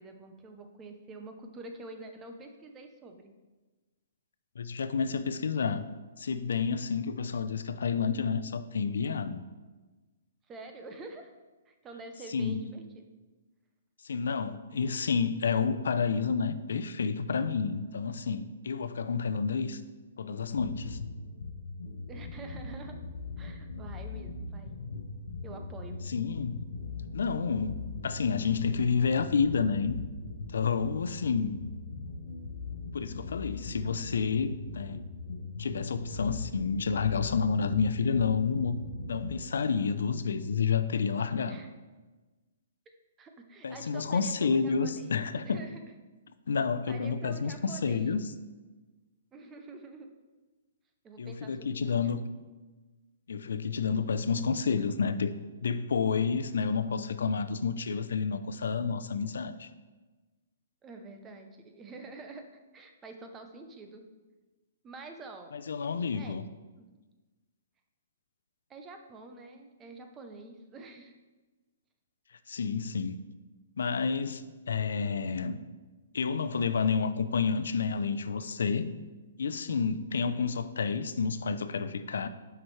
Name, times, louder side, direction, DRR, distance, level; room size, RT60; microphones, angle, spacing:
voice 1, 0.0-3.3 10.5-11.3 11.7-13.0 22.1-23.0 23.4-24.7 25.4-26.0 41.5-41.7 43.2-45.2 45.4-45.7 46.9-48.2 49.3-50.1 51.0-51.9 60.8-62.4 62.7-64.0 64.8-65.5 66.1-66.4 66.8-66.9 68.7-71.1, right 3 dB, 15° right, 0.6 m, -47 dB
voice 2, 4.6-5.8 6.2-9.4 12.3-12.7 14.0-19.8 20.2-21.0 26.1-26.6 27.1-30.0 30.5-31.6 32.9-35.0 35.6-38.8 39.1-41.6 43.6-45.6 46.5-48.3 51.2-52.2 53.3-55.3 55.6-59.7 65.5-66.4 72.5-73.2 73.8-75.6 76.1-78.9 79.4-82.3, left 5 dB, 85° left, 0.5 m, -30 dB
sound 1, 20.6-39.3, left 3 dB, 65° left, 0.9 m, -40 dB
9.2 x 5.9 x 3.2 m
hypercardioid pair, 170°, 0 cm